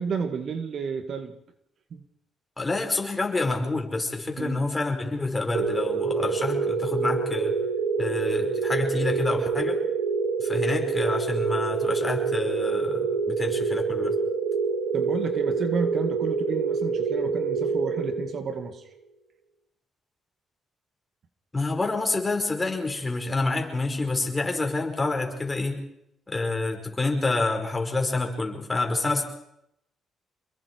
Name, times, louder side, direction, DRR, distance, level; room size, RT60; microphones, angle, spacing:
voice 1, 0.0-1.3 1.9-2.0 4.4-4.7 14.9-18.9, right 5 dB, 60° right, 8 dB, 2.0 m, -31 dB
voice 2, 2.6-7.6 8.0-9.8 10.4-14.2 21.5-25.8 26.3-29.2, left 3 dB, 20° left, 3 dB, 5.2 m, -28 dB
sound 1, 5.5-18.7, right 5 dB, 90° right, 4.2 m, -26 dB
27.5 x 22.0 x 4.7 m, 0.77 s
cardioid pair, 90°, 0 cm